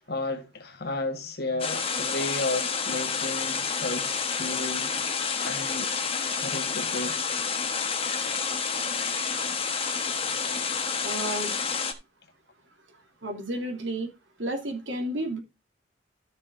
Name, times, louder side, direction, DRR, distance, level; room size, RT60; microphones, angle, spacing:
voice 1, 0.0-5.9 6.4-7.2, left 2 dB, 55° left, 1.6 m, -33 dB
sound 1, 1.6-11.9, left 5 dB, 30° left, 1.2 m, -29 dB
voice 2, 11.0-11.5 13.2-14.1 14.4-15.4, right 1 dB, 80° right, 2.8 m, -31 dB
13.5 x 6.7 x 2.7 m
head